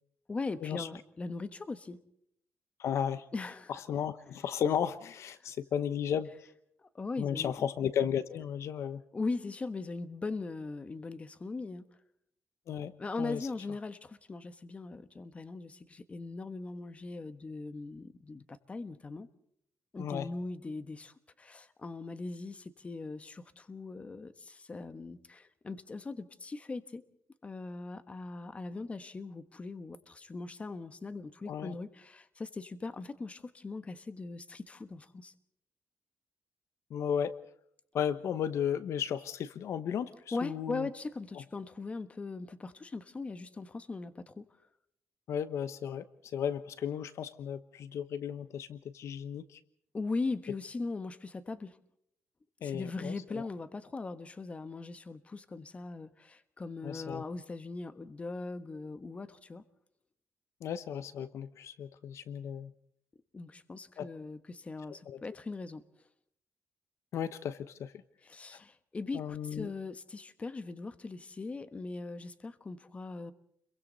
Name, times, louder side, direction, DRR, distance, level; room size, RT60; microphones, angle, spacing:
voice 1, 0.3-2.0 3.3-3.7 5.4-5.5 6.8-7.7 9.1-11.8 13.0-19.3 19.9-27.0 27.4-35.3 40.3-44.5 49.9-51.8 52.6-59.6 63.3-65.8 68.2-73.3, left 3 dB, 25° left, 1.3 m, -40 dB
voice 2, 2.8-3.2 3.7-6.3 7.2-9.0 12.7-12.9 13.2-13.5 20.0-20.3 31.5-31.7 36.9-37.4 37.9-40.9 45.3-49.6 52.6-53.4 56.8-57.2 60.6-62.7 64.0-64.1 65.1-65.2 67.1-67.9 68.5-68.6 69.1-69.7, left 8 dB, 70° left, 1.0 m, -34 dB
30.0 x 23.0 x 4.1 m
cardioid pair, 120°, 5 cm